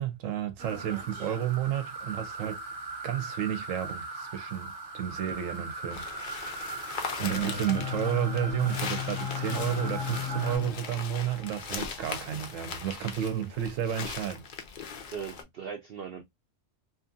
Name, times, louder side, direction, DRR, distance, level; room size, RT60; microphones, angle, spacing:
voice 1, 0.0-2.6 3.0-14.4, right 11 dB, 75° right, 1.0 m, -32 dB
sound 1, 0.6-10.6, right 3 dB, 45° right, 1.0 m, -40 dB
sound 2, 5.9-15.4, left 5 dB, 55° left, 0.5 m, -39 dB
sound 3, 7.2-12.9, left 8 dB, 75° left, 1.1 m, -36 dB
voice 2, 15.1-16.2, right 7 dB, 60° right, 0.6 m, -39 dB
2.9 x 2.5 x 2.5 m
omnidirectional pair, 1.4 m